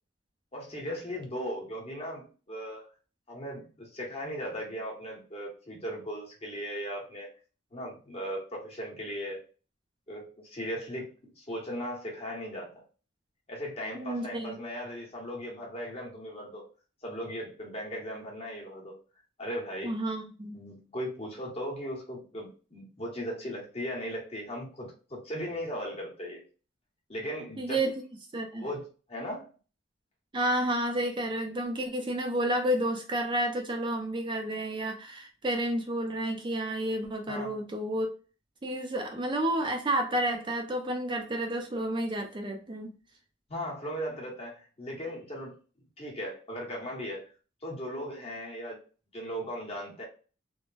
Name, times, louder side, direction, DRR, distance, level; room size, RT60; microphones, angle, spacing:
voice 1, 0.5-2.9 3.3-7.3 7.7-9.4 10.1-11.1 11.4-12.8 13.5-16.7 17.0-18.9 19.4-20.0 20.5-26.4 27.1-27.9 28.5-29.5 37.3-37.6 43.5-45.6 46.0-47.2 47.6-48.8 49.1-50.0, equal, 30° left, -2 dB, 1.1 m, -37 dB
voice 2, 13.9-14.6 19.8-20.6 27.6-27.9 28.3-28.6 30.3-38.1 38.6-42.9, right 1 dB, 25° right, 3 dB, 0.4 m, -30 dB
3.2 x 2.1 x 2.4 m, 0.36 s
head